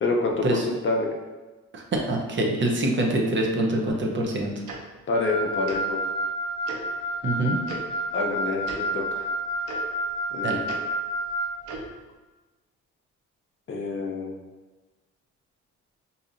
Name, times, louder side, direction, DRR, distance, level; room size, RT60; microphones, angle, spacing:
voice 1, 0.0-1.1 5.1-6.0 8.1-9.3 10.3-10.6 13.7-14.4, left 3 dB, 40° left, 0 dB, 0.6 m, -27 dB
voice 2, 1.7-4.6 7.2-7.6 10.4-10.6, right 1 dB, 40° right, 0 dB, 0.7 m, -25 dB
Tick-tock, 4.7-4.8 5.6-5.8 6.6-6.8 7.6-7.8 8.6-8.8 9.6-9.8 10.6-10.8 11.6-11.8, right 3 dB, 85° right, 0.7 m, -36 dB
Wind instrument woodwind instrument, 5.1-11.6, right 1 dB, 15° left, 1.0 m, -29 dB
3.9 x 2.8 x 2.5 m, 1.2 s
cardioid pair, 90°, 30 cm